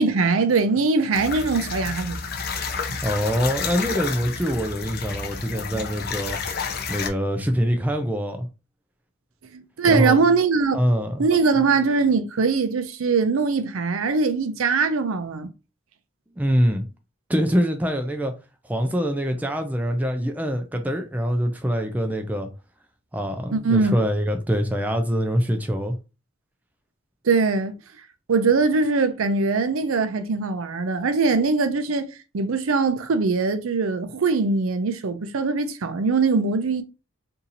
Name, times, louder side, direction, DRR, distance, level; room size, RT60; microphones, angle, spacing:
voice 1, 0.0-2.2 2.9-3.0 9.5-10.8 11.2-15.5 23.5-24.0 27.2-27.7 28.3-36.8, right 4 dB, 75° right, 0.5 m, -22 dB
sound 1, 1.1-7.1, left 5 dB, 45° left, 0.5 m, -30 dB
voice 2, 3.0-6.4 6.9-8.5 9.9-10.2 10.7-11.2 16.4-16.9 17.3-18.3 18.6-22.5 23.1-25.9, equal, 5° right, 0.3 m, -24 dB
2.8 x 2.7 x 3.9 m
head